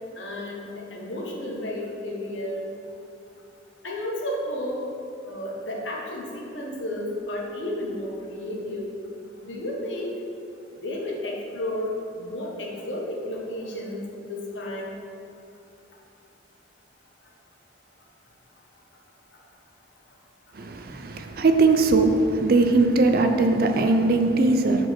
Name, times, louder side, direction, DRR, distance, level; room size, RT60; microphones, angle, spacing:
voice 1, 0.1-2.9 3.8-4.9 5.2-9.0 9.3-10.2 10.8-15.0 19.3-19.4, left 1 dB, 90° left, -2 dB, 1.2 m, -32 dB
voice 2, 20.5-24.9, right 3 dB, 55° right, 6 dB, 0.5 m, -20 dB
4.9 x 4.7 x 5.9 m, 2.7 s
head